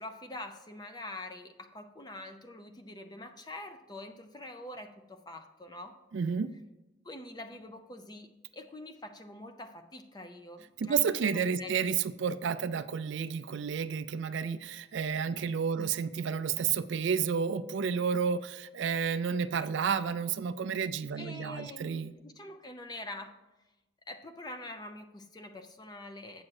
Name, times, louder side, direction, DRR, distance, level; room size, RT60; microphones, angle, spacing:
voice 1, 0.0-6.0 7.0-11.7 15.8-15.9 21.2-23.4 24.1-26.4, left 1 dB, 20° left, 7 dB, 0.5 m, -45 dB
voice 2, 6.1-6.5 10.8-22.1, right 6 dB, 60° right, 13 dB, 0.3 m, -31 dB
8.5 x 6.3 x 4.7 m, 1.0 s
head